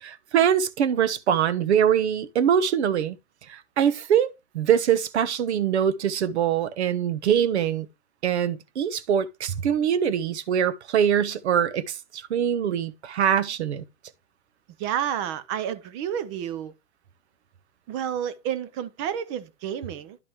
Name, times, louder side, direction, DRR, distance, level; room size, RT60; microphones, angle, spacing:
voice 1, 0.0-3.2 3.5-7.9 8.2-13.8, right 8 dB, 60° right, 1.1 m, -23 dB
voice 2, 14.8-16.7 17.9-20.2, right 9 dB, 25° right, 0.6 m, -30 dB
11.0 x 5.2 x 3.0 m
hypercardioid pair, 140°, 38 cm